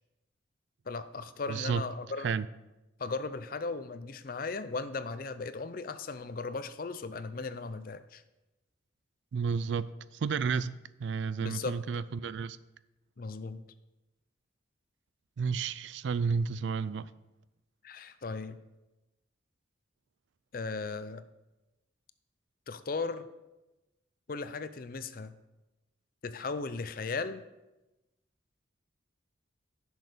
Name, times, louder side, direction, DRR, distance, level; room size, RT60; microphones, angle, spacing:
voice 1, 0.9-2.3 3.0-8.2 11.4-11.8 13.2-13.6 17.8-18.6 20.5-21.2 22.7-23.3 24.3-25.4 26.2-27.4, left 4 dB, 45° left, 0.5 m, -37 dB
voice 2, 1.5-1.8 2.2-2.5 9.3-12.6 15.4-17.1, right 5 dB, 70° right, 0.4 m, -32 dB
10.5 x 6.4 x 5.1 m
head